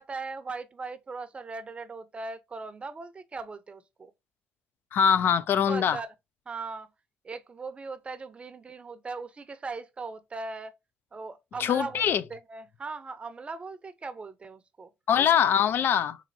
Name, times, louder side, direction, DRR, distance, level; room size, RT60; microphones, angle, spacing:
voice 1, 0.0-4.1 5.7-6.1 6.5-6.9 7.2-10.7 11.1-14.9, right 4 dB, 25° right, 0.6 m, -39 dB
voice 2, 4.9-6.0 11.6-12.2 15.1-16.2, left 8 dB, 55° left, 0.3 m, -23 dB
4.1 x 2.5 x 2.6 m
supercardioid pair, 85°, 4 cm